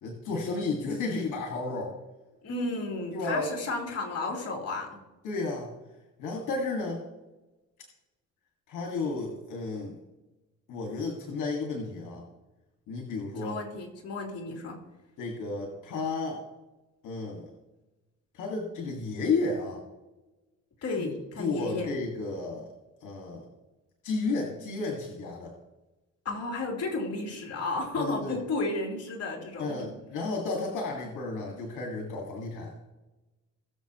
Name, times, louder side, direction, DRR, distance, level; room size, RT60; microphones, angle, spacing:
voice 1, 0.0-2.0 3.1-3.5 5.2-5.7 6.2-7.0 8.7-10.0 10.7-12.2 12.9-13.6 15.2-16.4 17.0-17.5 18.3-19.8 21.0-21.1 21.4-22.7 23.0-23.5 24.0-25.5 28.0-28.4 29.6-32.7, left 3 dB, 80° left, 0 dB, 2.1 m, -32 dB
voice 2, 2.4-5.0 13.4-14.8 20.8-21.9 26.3-29.9, left 2 dB, 55° left, -1 dB, 3.5 m, -33 dB
20.0 x 7.0 x 3.1 m, 1.1 s
cardioid pair, 90°, 30 cm